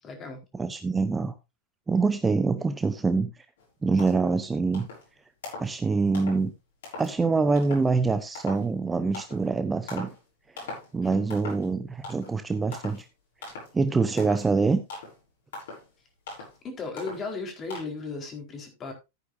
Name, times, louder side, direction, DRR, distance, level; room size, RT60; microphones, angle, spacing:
voice 1, 0.0-0.4 11.0-11.1 16.6-18.9, left 4 dB, 25° left, 2 dB, 4.3 m, -36 dB
voice 2, 0.5-1.3 1.9-3.3 3.8-4.9 5.6-6.5 7.0-10.1 10.6-13.1 13.7-14.8, right 4 dB, 15° right, 10 dB, 0.9 m, -25 dB
sound 1, 3.6-3.7 4.0-4.4 4.7-5.1 5.4-5.8 6.1-6.4 6.8-7.1 7.6-7.9 8.3-8.7 9.1-9.5 9.9-10.2 10.6-10.9 11.3-11.7 12.0-12.4 12.7-13.0 13.4-13.7 14.2-14.5 14.9-15.2 15.5-15.9 16.3-16.6 17.0-17.3 17.7-17.8, left 3 dB, 60° left, 6.8 m, -40 dB
14.0 x 9.6 x 2.7 m, 0.25 s
figure-of-eight pair, 90°, 0 cm